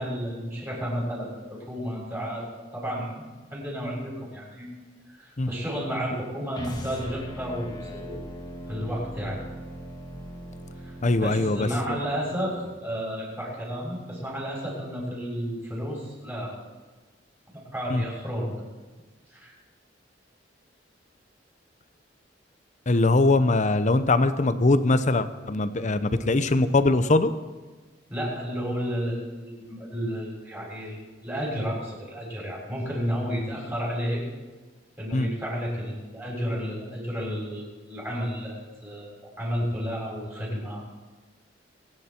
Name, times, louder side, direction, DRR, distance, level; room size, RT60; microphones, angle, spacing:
voice 1, 0.0-2.5 2.7-4.8 5.2-8.2 8.7-9.4 10.8-16.6 17.7-18.5 19.3-19.5 28.1-34.2 35.0-40.8, equal, 15° right, -5 dB, 6.8 m, -32 dB
sound 1, 6.5-12.7, equal, 25° left, 2.0 m, -40 dB
voice 2, 11.0-11.7 17.9-18.0 22.9-27.3 35.1-35.3, left 2 dB, 40° left, 12 dB, 0.8 m, -22 dB
24.0 x 10.5 x 4.5 m, 1.3 s
head